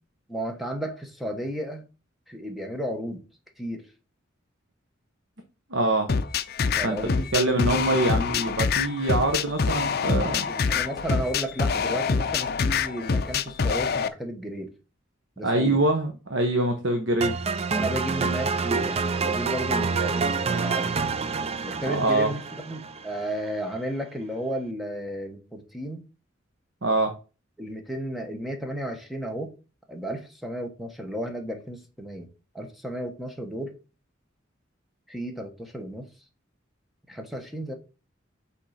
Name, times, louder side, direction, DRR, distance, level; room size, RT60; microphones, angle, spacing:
voice 1, 0.3-1.8 2.3-3.2 3.6-3.8 6.8-7.3 10.5-14.7 15.4-15.8 17.7-20.9 21.6-26.0 27.6-29.5 29.9-32.3 32.5-33.7 35.1-36.1 37.1-37.7, right 1 dB, ahead, 1.2 m, -33 dB
voice 2, 5.7-6.1 6.8-7.0 7.3-10.5 15.4-17.4 21.9-22.3 26.8-27.1, right 2 dB, 65° right, 1.1 m, -24 dB
sound 1, 6.1-14.1, left 5 dB, 50° left, 0.5 m, -25 dB
sound 2, 17.2-23.3, right 4 dB, 30° right, 0.5 m, -27 dB
6.3 x 3.9 x 5.8 m
head